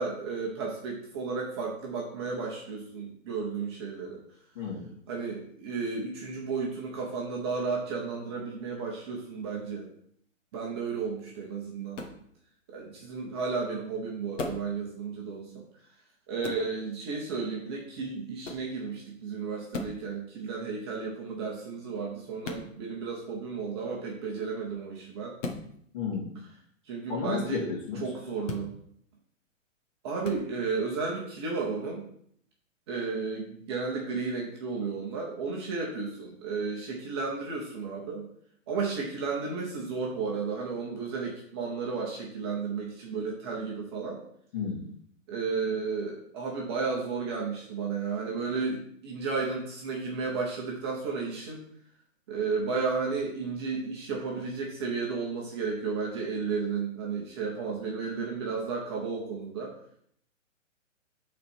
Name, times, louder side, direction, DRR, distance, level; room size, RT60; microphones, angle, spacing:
voice 1, 0.0-4.2 5.1-9.9 10.5-12.0 12.7-15.6 16.3-25.4 26.8-27.7 27.9-28.7 30.0-32.0 32.9-38.3 38.7-44.2 45.3-51.6 52.3-59.8, right 4 dB, 20° right, -2 dB, 0.9 m, -33 dB
voice 2, 4.5-4.9 25.9-26.3 27.1-28.0 44.5-44.9, left 5 dB, 40° left, -7 dB, 3.0 m, -32 dB
sound 1, 11.9-12.2 14.4-14.7 16.4-16.7 18.4-18.7 19.7-20.0 22.4-22.7 25.4-25.7 28.4-28.7 30.2-30.4, left 3 dB, 65° left, 1.6 m, -36 dB
9.3 x 4.3 x 4.5 m, 0.66 s
hypercardioid pair, 170°, 39 cm